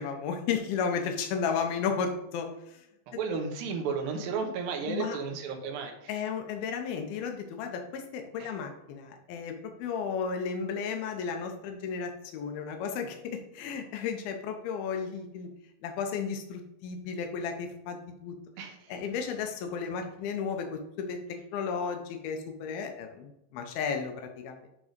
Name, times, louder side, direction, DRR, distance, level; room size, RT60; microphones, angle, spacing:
voice 1, 0.0-2.8 4.9-5.2 6.1-15.5 15.8-18.4 18.9-24.7, left 6 dB, 85° left, 5 dB, 2.1 m, -34 dB
voice 2, 3.1-6.2 8.4-8.6 18.6-18.9, right 5 dB, 75° right, 3 dB, 2.2 m, -34 dB
10.5 x 3.7 x 5.1 m, 0.84 s
omnidirectional pair, 5.3 m